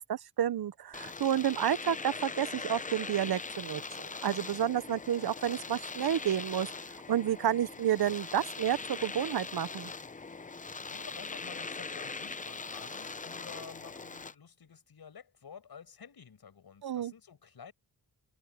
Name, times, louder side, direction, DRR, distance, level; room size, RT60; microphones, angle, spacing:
voice 1, 0.1-6.7 7.1-9.9 16.8-17.1, right 10 dB, 75° right, 0.8 m, -30 dB
Domestic sounds home sounds, 0.9-14.3, left 4 dB, 20° left, 0.6 m, -41 dB
voice 2, 10.4-17.7, left 7 dB, 70° left, 6.4 m, -51 dB
wide cardioid pair, 160°, 38 cm